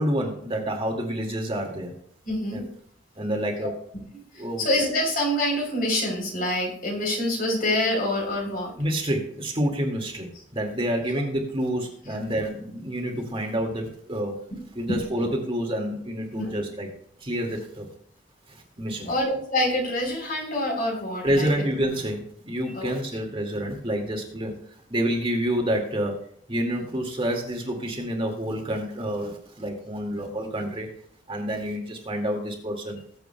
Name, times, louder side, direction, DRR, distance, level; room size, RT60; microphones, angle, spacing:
voice 1, 0.0-1.9 2.5-2.7 3.2-3.7 4.4-4.7 8.8-14.4 14.8-16.9 17.2-17.9 18.5-19.1 21.2-24.6 24.9-26.2 26.5-30.9 31.3-33.0, equal, 30° right, 1 dB, 2.1 m, -28 dB
voice 2, 2.3-2.6 4.6-8.7 14.9-15.0 16.3-16.5 19.1-21.5 22.7-23.0, left 1 dB, 50° left, 1 dB, 3.6 m, -26 dB
20.5 x 8.0 x 2.3 m, 0.64 s
head